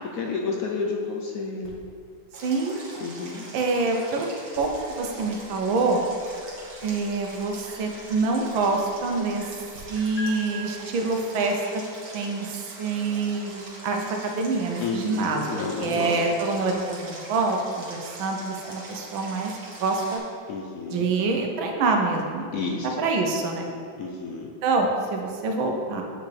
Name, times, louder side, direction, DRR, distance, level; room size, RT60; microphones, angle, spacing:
voice 1, 0.1-1.8 3.0-3.5 14.8-16.1 20.5-21.1 22.5-22.9 24.0-24.5, left 4 dB, 70° left, 0 dB, 0.8 m, -30 dB
sound 1, 1.6-9.8 10.2-10.3, left 4 dB, 50° left, 1.7 m, -48 dB
Stream, 2.3-20.2, right 1 dB, 55° right, 1.8 m, -43 dB
voice 2, 2.4-2.8 3.5-4.3 4.6-6.0 6.8-9.4 9.9-11.6 12.1-19.5 19.8-20.2 20.9-22.5 22.8-23.7 24.6-26.0, right 3 dB, 85° right, 2 dB, 1.6 m, -26 dB
8.8 x 5.8 x 3.3 m, 2.3 s
omnidirectional pair, 2.1 m